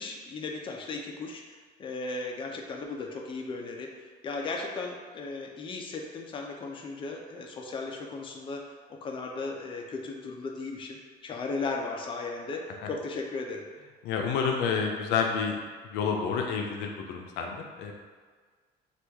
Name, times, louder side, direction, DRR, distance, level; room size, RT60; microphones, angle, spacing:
voice 1, 0.0-8.6 8.9-13.6, left 3 dB, 30° left, 1 dB, 0.4 m, -36 dB
voice 2, 14.0-15.6 15.8-17.9, left 6 dB, 90° left, 2 dB, 0.4 m, -29 dB
3.0 x 2.4 x 3.4 m, 1.5 s
cardioid pair, 110°, 17 cm